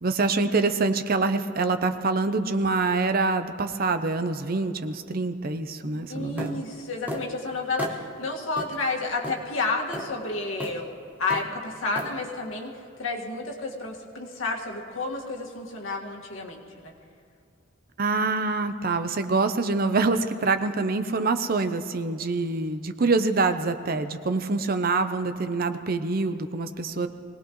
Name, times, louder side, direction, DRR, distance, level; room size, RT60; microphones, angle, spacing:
voice 1, 0.0-6.6 18.0-27.1, right 3 dB, 45° right, 9 dB, 0.7 m, -25 dB
voice 2, 6.1-10.9 11.2-12.7 13.0-16.9, left 3 dB, 80° left, -1 dB, 1.9 m, -31 dB
sound 1, 6.4-6.6 7.1-7.3 7.8-8.0 8.6-8.7 9.2-9.4 9.9-10.1 10.6-10.8 11.3-11.5 11.9-12.1, equal, 10° right, 1.1 m, -33 dB
23.0 x 18.5 x 3.1 m, 2.5 s
head